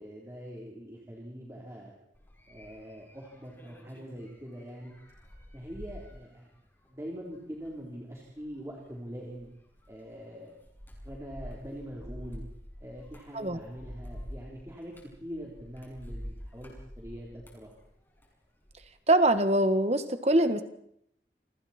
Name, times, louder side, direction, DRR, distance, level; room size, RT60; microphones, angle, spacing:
voice 1, 0.0-2.0 2.5-4.9 5.5-6.5 6.9-9.5 9.9-10.5 11.0-12.4 12.8-14.9 15.2-17.7, equal, 15° right, -3 dB, 3.8 m, -43 dB
sound 1, 2.1-18.9 19.2-19.6, equal, 10° left, 7.0 m, -48 dB
voice 2, 19.1-20.6, right 1 dB, 35° right, 9 dB, 1.7 m, -23 dB
29.0 x 25.5 x 4.5 m, 0.72 s
head